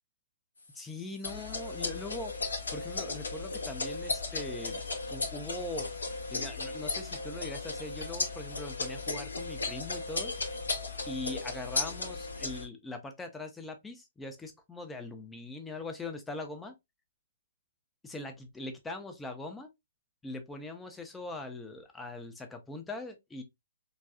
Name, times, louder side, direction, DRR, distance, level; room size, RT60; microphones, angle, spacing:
voice 1, 0.7-2.3 2.7-10.3 11.1-16.7 18.0-19.7 20.2-23.4, left 2 dB, 10° left, 0.7 m, -41 dB
sound 1, 1.2-12.6, left 3 dB, 85° left, 0.9 m, -35 dB
4.1 x 2.3 x 2.3 m
hypercardioid pair, 130°, 0 cm